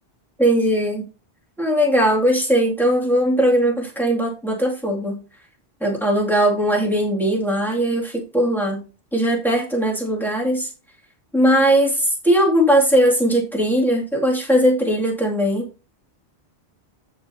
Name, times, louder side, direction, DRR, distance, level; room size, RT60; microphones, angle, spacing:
voice 1, 0.4-1.1 1.6-5.2 5.8-8.8 9.1-10.7 11.3-15.6, equal, ahead, -2 dB, 2.4 m, -19 dB
14.5 x 5.0 x 2.8 m, 0.32 s
omnidirectional pair, 1.1 m